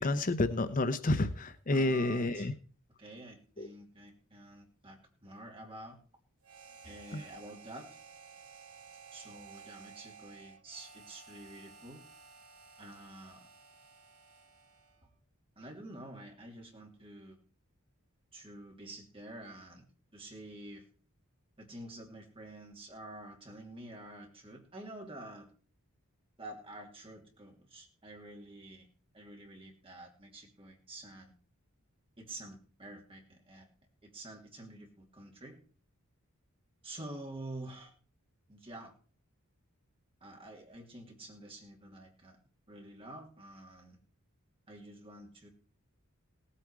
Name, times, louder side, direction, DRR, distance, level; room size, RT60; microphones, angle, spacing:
voice 1, 0.0-2.5 3.6-3.7 7.1-7.2, left 2 dB, 40° left, 11 dB, 0.7 m, -30 dB
voice 2, 1.7-2.5 3.0-6.0 6.8-7.9 9.1-12.0 12.8-13.5 15.6-17.4 18.3-19.8 20.1-20.8 21.6-25.5 26.4-28.9 29.1-31.3 32.2-33.7 34.0-35.6 36.8-37.9 38.5-38.9 40.2-42.4 42.7-44.0 44.7-45.5, right 1 dB, 25° right, 1 dB, 2.8 m, -48 dB
Harmonica, 6.4-15.1, right 5 dB, 90° right, 1.8 m, -55 dB
17.5 x 8.5 x 4.7 m, 0.42 s
head